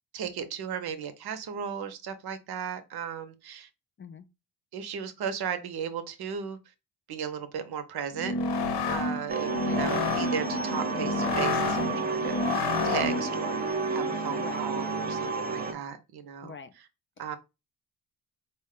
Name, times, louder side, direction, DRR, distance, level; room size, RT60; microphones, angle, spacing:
voice 1, 0.1-3.7 4.7-6.6 7.1-16.6 17.2-17.4, right 7 dB, 65° right, 0.8 m, -35 dB
sound 1, 8.1-13.4, left 4 dB, 70° left, 0.8 m, -30 dB
sound 2, 9.3-15.7, right 3 dB, 20° right, 0.7 m, -31 dB
voice 2, 16.4-16.7, left 6 dB, 30° left, 0.4 m, -43 dB
4.1 x 2.2 x 3.6 m
cardioid pair, 70°, 41 cm